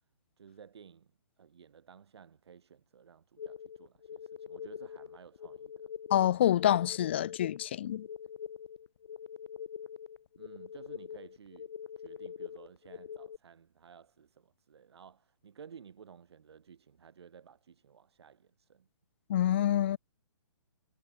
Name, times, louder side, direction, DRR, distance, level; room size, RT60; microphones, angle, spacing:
voice 1, 0.4-1.1 1.4-5.9 10.4-18.9, right 7 dB, 65° right, 3.6 m, -55 dB
sound 1, 3.4-13.4, left 8 dB, 55° left, 1.3 m, -44 dB
voice 2, 6.1-8.1 19.3-20.0, left 11 dB, 25° left, 0.4 m, -27 dB
hypercardioid pair, 170°, 15 cm